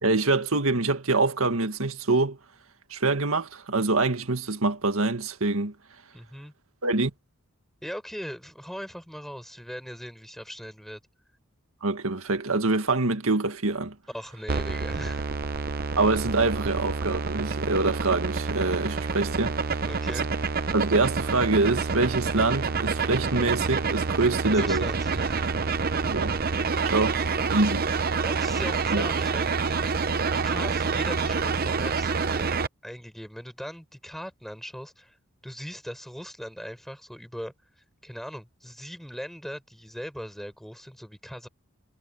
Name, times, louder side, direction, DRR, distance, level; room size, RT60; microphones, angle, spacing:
voice 1, 0.0-2.4 2.9-5.7 6.8-7.1 11.8-14.0 16.0-19.8 20.7-24.9 26.1-26.3 26.8-27.9 28.9-29.1, right 3 dB, 75° right, 2.0 m, -25 dB
voice 2, 6.1-6.5 7.8-11.0 14.1-15.3 19.9-20.3 24.5-25.5 28.2-35.2 35.4-37.5 38.0-41.5, equal, ahead, 5.8 m, -39 dB
sound 1, 14.5-32.7, right 4 dB, 45° right, 0.8 m, -27 dB
head